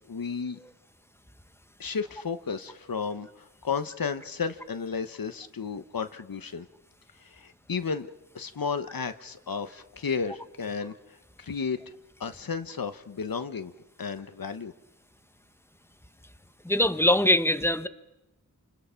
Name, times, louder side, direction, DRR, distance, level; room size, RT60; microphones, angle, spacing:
voice 1, 0.1-0.6 1.8-6.7 7.2-8.1 8.3-10.9 11.4-11.8 12.2-13.7 14.0-14.7, left 5 dB, 85° left, 1.0 m, -33 dB
voice 2, 16.6-17.9, left 1 dB, 5° left, 1.2 m, -22 dB
28.5 x 27.5 x 5.7 m
wide cardioid pair, 60°, 34 cm